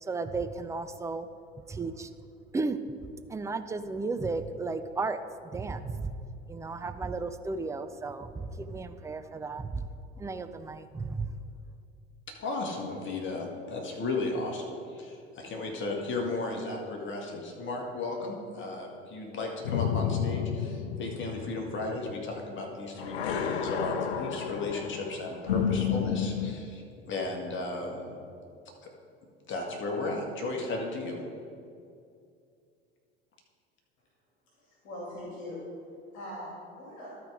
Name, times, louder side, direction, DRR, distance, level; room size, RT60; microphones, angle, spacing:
voice 1, 0.0-1.3 1.7-2.1 2.5-2.8 3.3-6.2 6.5-9.9 10.2-11.3, right 3 dB, 10° right, 9 dB, 0.4 m, -34 dB
voice 2, 12.4-28.2 28.8-28.9 29.5-31.2, left 2 dB, 35° left, 1 dB, 1.9 m, -35 dB
sound 1, 19.6-22.7 23.0-26.6, left 8 dB, 75° left, 0.6 m, -31 dB
voice 3, 34.6-35.7 36.1-37.1, left 1 dB, 60° left, -5 dB, 2.5 m, -41 dB
12.5 x 4.7 x 5.0 m, 2.4 s
figure-of-eight pair, 70°, 32 cm